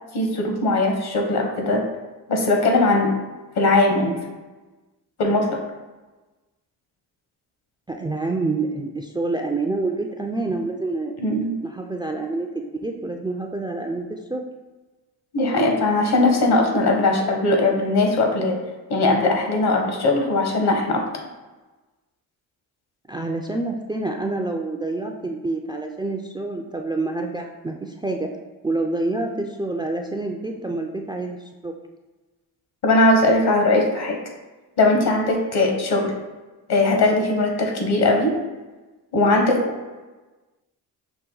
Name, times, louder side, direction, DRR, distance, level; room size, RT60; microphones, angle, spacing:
voice 1, 0.1-1.9 2.3-3.1 3.6-4.2 5.2-5.6 11.2-11.6 15.3-18.6 18.9-21.0 32.8-34.2 34.8-36.1 36.7-38.4 39.1-39.7, left 2 dB, 60° left, 2 dB, 1.3 m, -19 dB
voice 2, 7.9-11.1 11.6-14.4 23.1-28.3 28.6-31.4 31.6-31.7, right 2 dB, 10° right, 2 dB, 0.4 m, -27 dB
5.8 x 2.2 x 3.9 m, 1.2 s
supercardioid pair, 60°, 43 cm